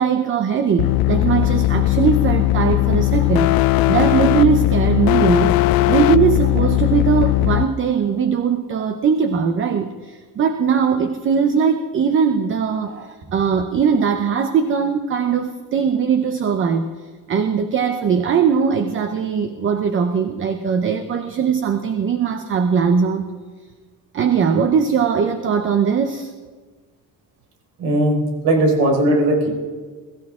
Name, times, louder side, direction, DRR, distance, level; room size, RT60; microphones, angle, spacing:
voice 1, 0.0-3.6 3.9-5.6 5.9-16.9 17.3-23.3 24.1-26.3, right 6 dB, 35° right, 8 dB, 0.8 m, -20 dB
sound 1, 0.8-7.6, left 16 dB, 65° left, 0.6 m, -18 dB
voice 2, 27.8-29.5, right 1 dB, 75° right, 0 dB, 5.0 m, -18 dB
23.0 x 15.0 x 3.7 m, 1.5 s
cardioid pair, 160°, 37 cm